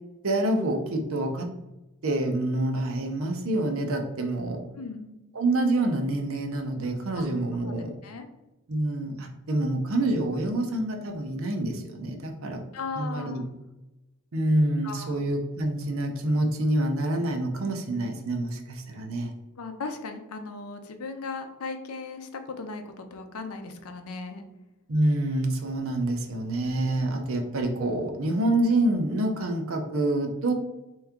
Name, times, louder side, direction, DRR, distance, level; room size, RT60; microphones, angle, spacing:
voice 1, 0.2-1.5 2.0-4.6 5.3-8.0 8.7-12.6 13.0-13.4 14.3-19.3 24.9-30.5, right 1 dB, 65° right, 4 dB, 0.6 m, -27 dB
voice 2, 4.7-5.2 7.2-7.3 7.6-7.7 8.0-8.3 12.7-13.5 14.8-15.2 19.6-24.5, left 4 dB, 80° left, 6 dB, 0.6 m, -37 dB
3.5 x 3.0 x 3.6 m, 0.99 s
head